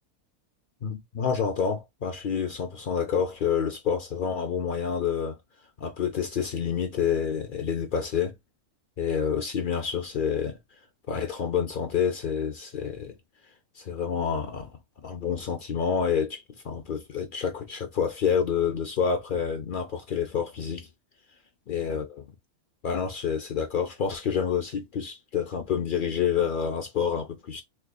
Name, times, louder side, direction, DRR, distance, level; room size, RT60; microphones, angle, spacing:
voice 1, 0.8-5.4 5.8-8.3 9.0-10.6 11.1-13.1 13.8-14.7 15.0-20.9 21.7-22.2 22.8-27.6, left 7 dB, 65° left, 0.5 m, -28 dB
4.5 x 2.4 x 2.3 m
omnidirectional pair, 1.5 m